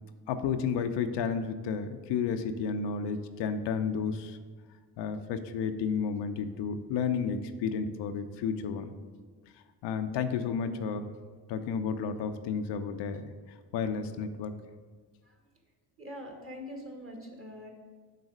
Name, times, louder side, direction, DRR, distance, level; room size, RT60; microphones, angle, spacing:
voice 1, 0.3-4.4 5.0-8.9 9.8-11.1 11.5-13.3 13.7-14.5, left 6 dB, 70° left, 8 dB, 0.6 m, -32 dB
voice 2, 16.0-17.7, equal, 30° right, 2 dB, 1.9 m, -43 dB
6.5 x 4.0 x 6.3 m, 1.5 s
hypercardioid pair, 50°, 43 cm